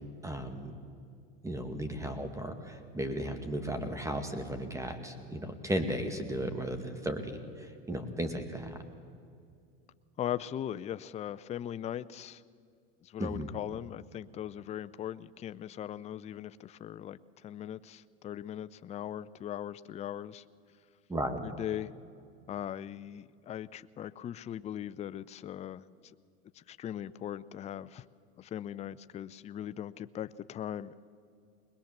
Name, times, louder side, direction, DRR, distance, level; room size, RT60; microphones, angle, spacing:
voice 1, 0.2-0.7 1.4-7.3 7.6-8.8 13.2-13.5 21.1-21.4, right 1 dB, 10° right, 6 dB, 2.0 m, -35 dB
voice 2, 10.2-12.4 13.0-20.4 21.4-21.9 22.5-25.9 26.5-28.1 28.4-30.9, left 10 dB, 20° left, 15 dB, 0.4 m, -39 dB
21.0 x 21.0 x 7.3 m, 2.4 s
supercardioid pair, 110°, 33 cm